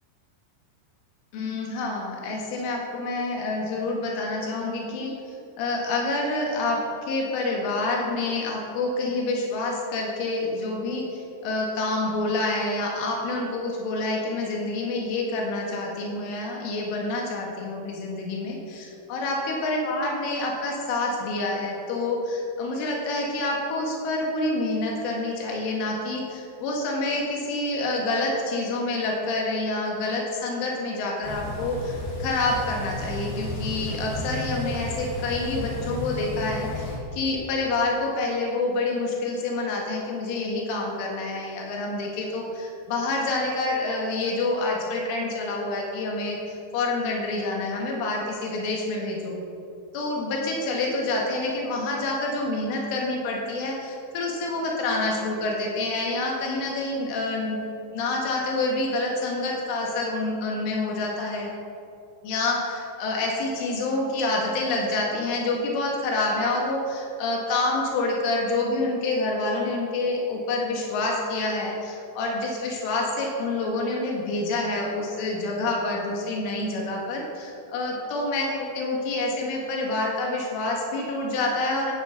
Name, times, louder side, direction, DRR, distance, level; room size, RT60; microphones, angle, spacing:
voice 1, 1.3-5.1 5.6-6.8 7.1-46.4 46.7-49.3 49.9-57.6 57.9-61.5 62.2-81.9, left 2 dB, 85° left, -1 dB, 4.3 m, -27 dB
sound 1, 31.2-37.0, left 1 dB, 60° left, 4.9 m, -33 dB
13.0 x 9.5 x 7.0 m, 2.6 s
omnidirectional pair, 5.5 m